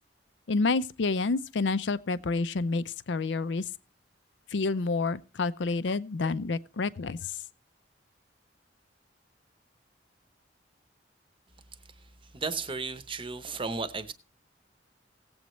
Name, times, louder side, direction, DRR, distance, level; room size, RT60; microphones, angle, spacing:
voice 1, 0.5-3.6 4.5-7.3, left 3 dB, 80° left, 0.5 m, -29 dB
voice 2, 12.3-14.1, right 4 dB, 30° right, 0.8 m, -34 dB
17.5 x 7.9 x 3.1 m
head